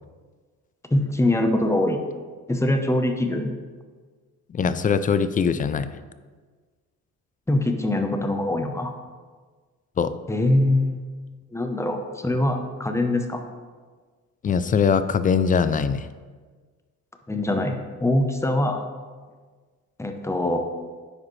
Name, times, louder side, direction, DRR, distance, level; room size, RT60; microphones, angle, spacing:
voice 1, 0.9-2.0 2.5-3.5 7.5-8.9 10.3-11.0 11.5-13.4 17.3-18.8 20.0-20.6, left 1 dB, 10° left, 5 dB, 0.8 m, -23 dB
voice 2, 4.5-5.9 10.0-10.1 14.4-16.1, left 6 dB, 30° left, 13 dB, 0.4 m, -22 dB
9.6 x 4.8 x 3.2 m, 1.4 s
cardioid pair, 90°, 30 cm